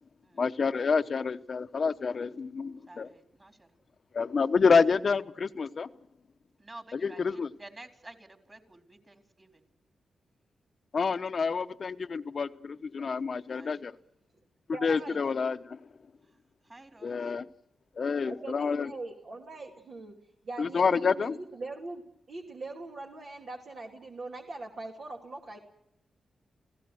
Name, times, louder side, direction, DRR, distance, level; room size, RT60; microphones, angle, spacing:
voice 1, 0.4-3.1 4.1-5.9 6.9-7.5 10.9-13.9 14.8-15.8 17.0-17.4 18.0-18.9 20.6-21.4, left 5 dB, 55° left, 11 dB, 0.9 m, -28 dB
voice 2, 2.9-3.7 6.6-9.5 13.5-13.8 14.8-15.2 16.7-17.2, right 2 dB, 30° right, 5 dB, 3.9 m, -50 dB
voice 3, 14.7-15.2 18.2-20.1 20.4-22.0 22.3-25.6, right 2 dB, 65° right, -1 dB, 2.7 m, -41 dB
29.5 x 16.5 x 6.3 m, 0.75 s
cardioid pair, 60°, 0 cm